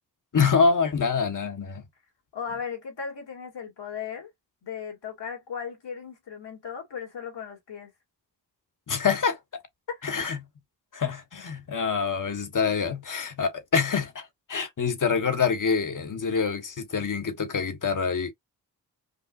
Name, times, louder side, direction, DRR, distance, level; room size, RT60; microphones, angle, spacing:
voice 1, 0.3-1.8 8.9-9.4 10.0-10.4 10.9-18.3, left 5 dB, 45° left, 1.3 m, -26 dB
voice 2, 2.3-4.3 4.6-7.9 9.9-10.0, left 7 dB, 70° left, 2.3 m, -36 dB
5.2 x 2.4 x 2.4 m
cardioid pair, 55°, 43 cm